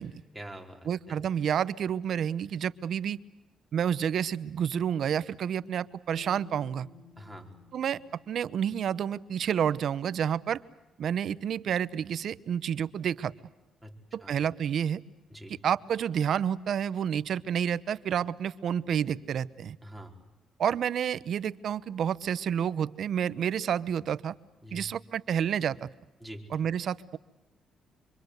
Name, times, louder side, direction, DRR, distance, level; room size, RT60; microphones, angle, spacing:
voice 1, 0.3-1.2 7.2-7.6 13.8-13.9 14.2-14.4 15.3-15.6 19.8-20.2 24.6-24.8 26.2-26.4, equal, 5° right, 0 dB, 4.5 m, -45 dB
voice 2, 0.9-3.2 3.7-6.9 7.7-8.0 8.3-10.6 11.0-13.3 14.1-15.0 15.6-19.8 20.6-24.4 24.7-25.9 26.5-27.2, right 8 dB, 65° right, 16 dB, 0.9 m, -29 dB
sound 1, 6.2-10.1, left 7 dB, 50° left, 3.9 m, -54 dB
26.5 x 24.0 x 8.1 m, 1.0 s
cardioid pair, 90°, 0 cm